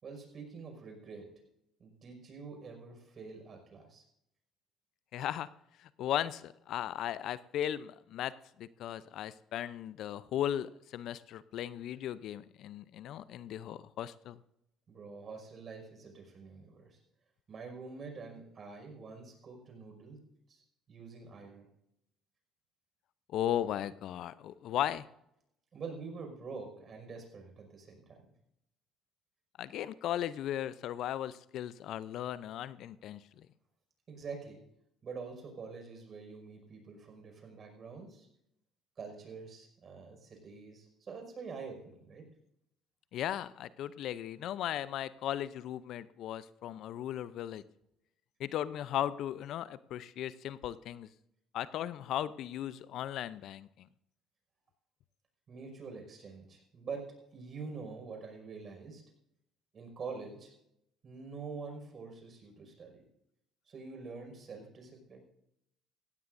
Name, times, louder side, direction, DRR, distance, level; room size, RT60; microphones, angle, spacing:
voice 1, 0.0-1.3 1.8-4.0 14.9-17.0 17.5-20.2 20.5-20.6 20.9-21.7 25.7-28.3 34.1-34.6 35.0-38.3 39.0-42.2 55.5-59.0 59.7-60.5 61.0-63.0 63.7-65.2, right 4 dB, 45° right, 4 dB, 5.4 m, -46 dB
voice 2, 5.1-5.5 5.8-14.4 23.3-25.1 29.6-33.5 43.1-47.6 48.4-51.1 51.5-53.9, left 11 dB, 65° left, 17 dB, 0.5 m, -37 dB
17.0 x 16.0 x 2.6 m, 0.78 s
hypercardioid pair, 60°, 0 cm